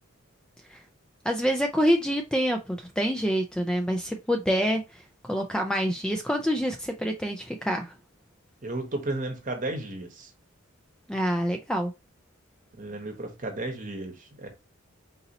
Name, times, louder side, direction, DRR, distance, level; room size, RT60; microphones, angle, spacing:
voice 1, 1.2-7.9 11.1-11.9, equal, 5° left, 0.3 m, -27 dB
voice 2, 8.6-10.3 12.7-14.5, right 2 dB, 40° right, 1.0 m, -33 dB
4.0 x 2.7 x 4.0 m
head